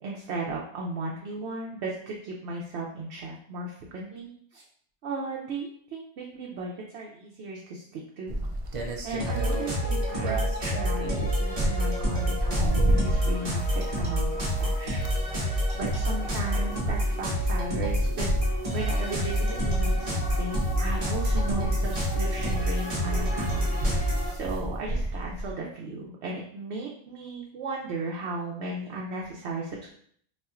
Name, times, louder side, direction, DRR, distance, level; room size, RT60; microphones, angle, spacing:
voice 1, 0.0-4.6 5.0-8.4 9.0-14.3 14.6-15.0 15.2-29.9, right 2 dB, 85° right, -2 dB, 0.9 m, -36 dB
sound 1, 8.3-25.5, right 1 dB, 60° right, 0.3 m, -31 dB
sound 2, 9.2-24.3, equal, 35° right, 0.8 m, -28 dB
sound 3, 16.0-24.1, left 3 dB, 85° left, 0.8 m, -47 dB
4.1 x 2.4 x 2.3 m, 0.62 s
omnidirectional pair, 1.1 m